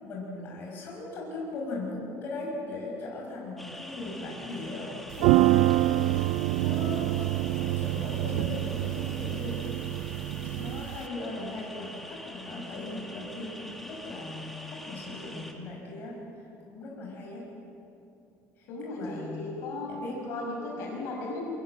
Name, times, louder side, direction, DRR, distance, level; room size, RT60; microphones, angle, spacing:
voice 1, 0.0-5.7 6.0-7.2 7.6-9.6 10.0-17.5 18.6-19.5 19.9-20.5 20.7-20.8, left 2 dB, 35° left, -3 dB, 5.7 m, -39 dB
sound 1, 3.6-15.5, equal, ahead, 1.7 m, -44 dB
sound 2, 5.1-11.0, right 16 dB, 70° right, 0.4 m, -26 dB
voice 2, 18.7-19.9 20.3-21.4, left 2 dB, 55° left, -1 dB, 5.6 m, -36 dB
24.0 x 20.0 x 7.7 m, 2.7 s
cardioid pair, 180°, 6 cm